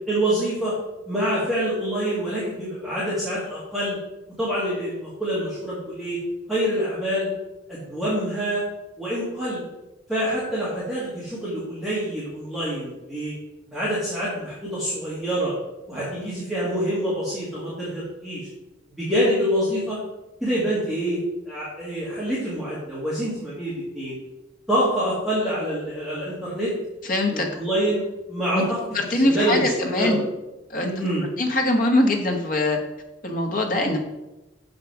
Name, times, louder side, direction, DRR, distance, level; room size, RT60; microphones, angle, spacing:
voice 1, 0.1-0.7 1.1-4.0 4.4-6.2 6.5-7.3 7.7-8.6 9.0-9.6 10.1-13.3 13.7-15.5 15.9-18.5 19.0-20.0 20.4-24.1 24.7-26.7 27.3-28.0 28.3-28.8 29.1-29.7 30.0-30.1 30.8-31.2, equal, ahead, -9 dB, 1.9 m, -26 dB
voice 2, 27.0-27.5 28.5-28.6 28.9-30.2 30.7-30.9 31.4-32.8 33.2-34.0, left 1 dB, 45° left, 2 dB, 1.2 m, -22 dB
6.6 x 5.3 x 5.9 m, 1.0 s
head